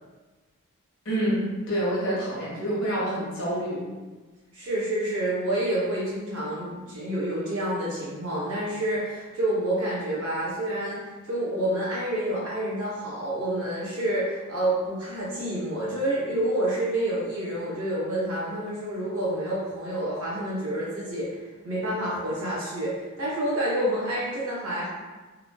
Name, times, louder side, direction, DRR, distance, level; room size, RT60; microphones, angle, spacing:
voice 1, 1.0-3.8, right 1 dB, 65° left, -6 dB, 0.9 m, -27 dB
voice 2, 4.5-11.0 11.3-24.9, right 1 dB, 85° right, -7 dB, 1.0 m, -28 dB
3.1 x 2.1 x 2.2 m, 1.3 s
head